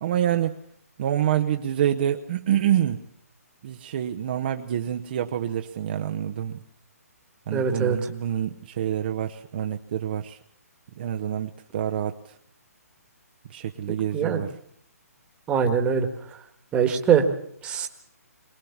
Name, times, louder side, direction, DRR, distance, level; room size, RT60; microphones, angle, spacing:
voice 1, 0.0-0.6 1.0-3.0 3.6-6.6 7.5-10.4 11.0-12.4 13.5-14.5, right 10 dB, 35° right, 4 dB, 0.8 m, -27 dB
voice 2, 7.5-8.0 14.1-14.4 15.5-16.1 16.7-17.3 17.6-17.9, right 7 dB, 10° right, 5 dB, 1.5 m, -22 dB
23.0 x 19.5 x 7.2 m, 0.66 s
hypercardioid pair, 165°, 9 cm